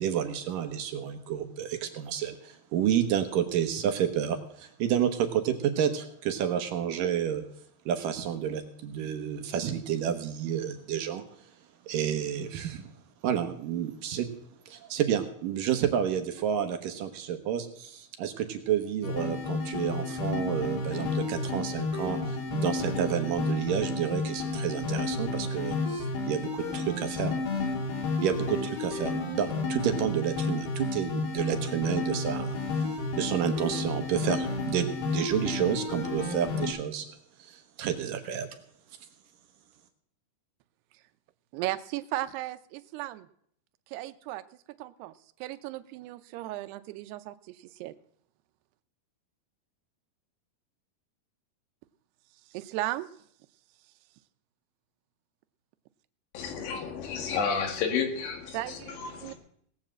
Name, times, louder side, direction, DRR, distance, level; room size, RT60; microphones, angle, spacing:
voice 1, 0.0-7.4 7.9-11.2 11.9-12.9 13.2-14.3 14.7-27.3 28.2-32.9 33.2-37.1 37.4-38.5, right 9 dB, 70° right, 7 dB, 2.3 m, -30 dB
sound 1, 19.0-36.7, left 3 dB, 65° left, 4.2 m, -31 dB
voice 2, 41.5-43.3 43.9-44.4 44.8-45.1 45.4-47.9 52.5-53.1 58.5-59.3, right 16 dB, 85° right, 11 dB, 2.7 m, -36 dB
voice 3, 56.3-59.3, left 6 dB, 85° left, 5 dB, 4.0 m, -31 dB
18.0 x 7.3 x 7.5 m, 0.66 s
omnidirectional pair, 4.6 m